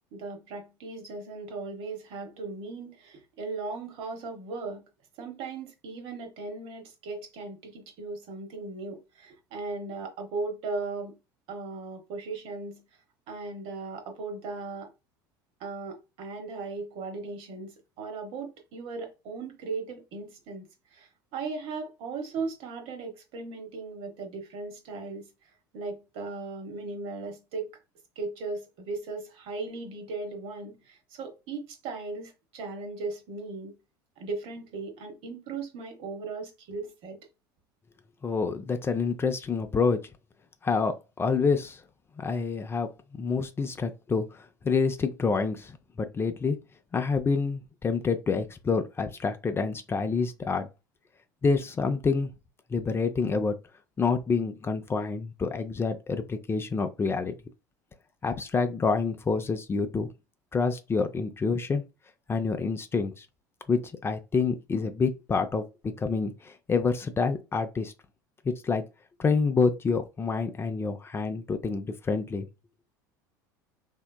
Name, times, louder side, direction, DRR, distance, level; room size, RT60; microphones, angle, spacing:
voice 1, 0.1-4.8 5.2-11.2 11.5-12.8 13.3-14.9 15.6-20.7 20.9-25.3 25.7-27.7 28.2-33.7 34.2-37.2, right 3 dB, 60° right, 1.0 m, -37 dB
voice 2, 38.2-40.0 40.6-41.8 42.2-46.6 46.9-50.7 51.4-52.3 52.7-53.6 54.0-57.3 58.2-60.1 60.5-61.8 62.3-63.3 63.7-65.6 66.0-67.9 68.4-68.8 69.2-72.5, left 4 dB, 25° left, 0.4 m, -27 dB
3.2 x 2.8 x 2.2 m
hypercardioid pair, 85°, 11 cm